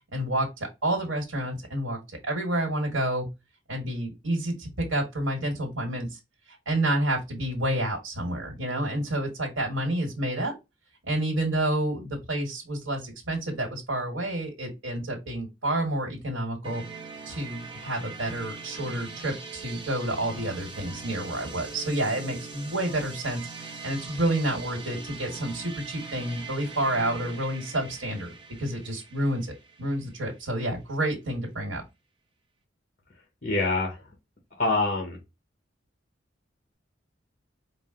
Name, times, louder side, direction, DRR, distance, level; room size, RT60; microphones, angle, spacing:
voice 1, 0.1-2.0 2.2-3.3 3.7-6.2 6.6-10.5 11.1-16.8 17.2-29.5 29.8-31.8, right 1 dB, 85° right, 1 dB, 1.4 m, -29 dB
sound 1, 16.6-30.4, right 4 dB, 25° right, 0.7 m, -42 dB
voice 2, 33.4-34.0 34.6-35.2, left 2 dB, 45° left, 1 dB, 1.2 m, -25 dB
5.0 x 2.1 x 3.7 m, 0.23 s
head